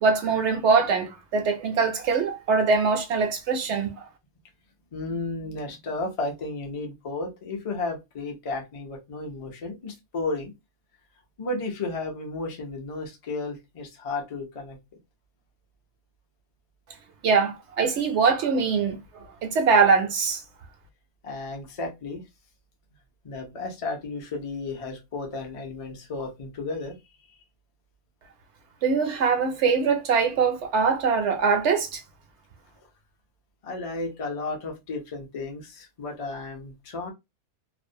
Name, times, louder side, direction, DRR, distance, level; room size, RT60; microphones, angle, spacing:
voice 1, 0.0-4.1 17.2-19.0 19.4-20.4 28.8-32.0, right 5 dB, 65° right, 0.8 m, -22 dB
voice 2, 4.9-10.5 11.4-14.8 21.2-22.2 23.2-27.0 33.6-37.1, left 3 dB, 45° left, 0.4 m, -33 dB
2.5 x 2.0 x 2.6 m
omnidirectional pair, 1.5 m